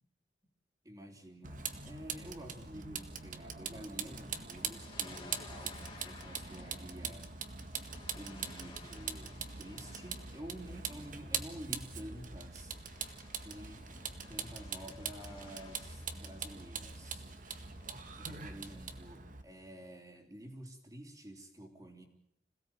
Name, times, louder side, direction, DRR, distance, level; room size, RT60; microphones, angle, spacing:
voice 1, 0.8-7.7 8.1-12.8 13.4-13.8 14.1-17.3 18.2-22.0, right 1 dB, 20° right, 1 dB, 3.5 m, -50 dB
Vehicle, 1.4-19.4, right 6 dB, 50° right, 1.8 m, -43 dB
sound 1, 4.3-18.6, left 3 dB, 30° left, 3.6 m, -57 dB
26.5 x 17.5 x 9.1 m, 0.85 s
head